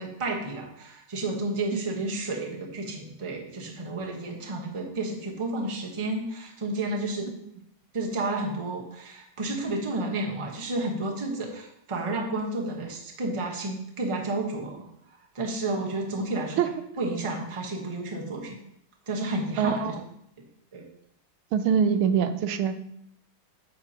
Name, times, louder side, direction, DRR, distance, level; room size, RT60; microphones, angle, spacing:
voice 1, 0.0-7.3 7.9-14.9 15.3-16.6 17.0-18.6 19.1-19.9 20.7-20.8, right 2 dB, 20° right, 0 dB, 0.9 m, -31 dB
voice 2, 19.6-20.0 21.5-22.7, right 7 dB, 90° right, 9 dB, 1.5 m, -24 dB
9.5 x 6.9 x 2.9 m, 0.78 s
omnidirectional pair, 2.2 m